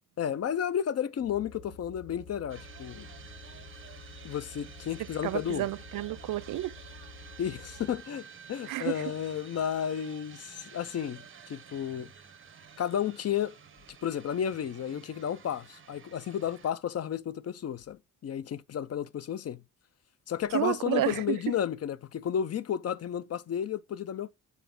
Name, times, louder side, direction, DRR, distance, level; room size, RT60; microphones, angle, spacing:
voice 1, 0.2-3.1 4.2-5.7 7.4-12.1 12.8-13.6 14.0-19.6 20.3-24.3, left 9 dB, 50° left, 0.5 m, -32 dB
sound 1, 1.2-8.1, left 3 dB, 70° left, 2.1 m, -49 dB
wildwood musicexpressshort, 2.5-16.7, right 6 dB, 40° right, 1.0 m, -51 dB
voice 2, 5.2-6.7 8.7-9.0 20.5-21.6, right 14 dB, 85° right, 0.5 m, -31 dB
7.0 x 4.0 x 3.8 m
cardioid pair, 115°, 33 cm